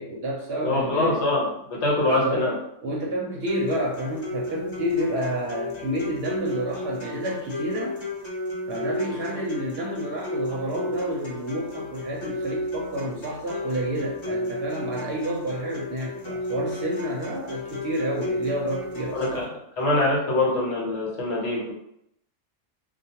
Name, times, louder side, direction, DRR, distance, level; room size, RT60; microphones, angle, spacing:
voice 1, 0.0-1.2 2.0-2.5 2.8-8.0 8.7-19.5, equal, 60° right, -2 dB, 0.7 m, -29 dB
voice 2, 0.6-2.6 19.1-19.5 19.8-21.7, left 2 dB, 65° left, -4 dB, 1.1 m, -24 dB
sound 1, 3.4-19.4, left 1 dB, 35° left, 0.4 m, -34 dB
2.2 x 2.2 x 2.8 m, 0.75 s
omnidirectional pair, 1.3 m